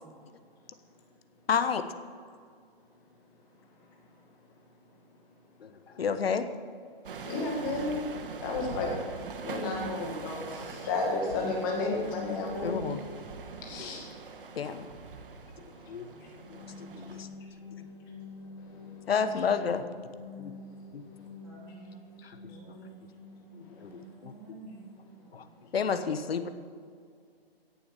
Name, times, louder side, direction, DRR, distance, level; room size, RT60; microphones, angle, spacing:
voice 1, 1.5-1.8 5.6-5.7 6.0-6.5 12.6-13.0 13.8-13.9 14.6-14.9 15.9-16.1 16.5-16.6 16.9-17.3 19.1-19.8 20.4-20.5 20.9-21.0 23.6-24.3 25.3-25.4 25.7-26.5, left 6 dB, 75° left, 10 dB, 1.1 m, -30 dB
sound 1, 7.0-17.2, right 5 dB, 60° right, 1.4 m, -43 dB
voice 2, 7.3-8.0 8.4-9.0 9.4-13.0 13.6-14.1 14.5-14.8 15.7-15.8 16.2-16.3 18.6-19.0 23.6-24.0, left 3 dB, 20° left, 0 dB, 2.0 m, -33 dB
sound 2, 16.0-23.8, left 4 dB, 40° right, 3.7 m, -47 dB
voice 3, 21.4-22.0 22.5-22.9 23.7-25.9, right 3 dB, 5° right, -7 dB, 2.5 m, -51 dB
17.0 x 7.4 x 5.3 m, 2.1 s
hypercardioid pair, 170°, 31 cm